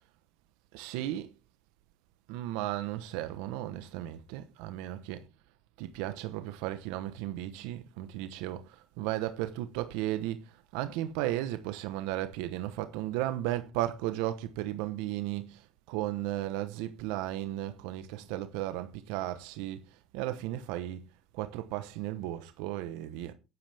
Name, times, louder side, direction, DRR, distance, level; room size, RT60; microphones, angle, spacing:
voice 1, 0.7-1.3 2.3-5.3 5.8-21.0 21.3-23.3, right 14 dB, 85° right, 1.0 m, -35 dB
11.0 x 10.5 x 3.5 m
cardioid pair, 125°, 0 cm